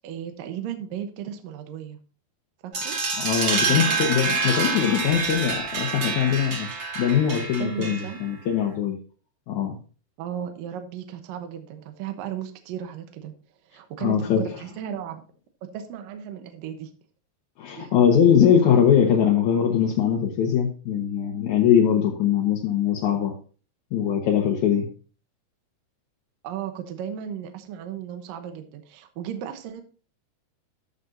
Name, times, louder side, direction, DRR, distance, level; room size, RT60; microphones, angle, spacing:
voice 1, 0.0-2.0 2.8-3.0 3.7-4.0 7.6-8.2 10.2-13.3 13.7-15.2 15.7-16.9 17.8-17.9 26.4-29.8, right 9 dB, 70° right, 2.3 m, -35 dB
sound 1, 2.7-8.3, right 4 dB, 45° right, 2.2 m, -27 dB
voice 2, 3.2-6.7 7.0-9.0 9.5-9.8 14.0-14.4 17.6-23.3 23.9-24.9, left 8 dB, 70° left, 1.9 m, -21 dB
13.5 x 6.7 x 2.7 m
omnidirectional pair, 4.7 m